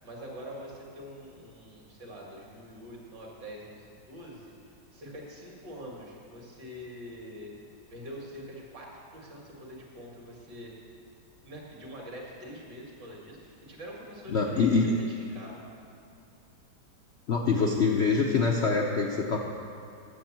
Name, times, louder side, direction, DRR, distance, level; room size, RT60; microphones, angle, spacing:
voice 1, 0.0-7.5 7.9-10.7 11.4-15.6, equal, 70° right, -2 dB, 2.7 m, -44 dB
voice 2, 14.3-14.9 17.3-19.4, left 4 dB, 60° left, 0 dB, 0.7 m, -25 dB
9.9 x 7.1 x 7.3 m, 2.6 s
omnidirectional pair, 2.0 m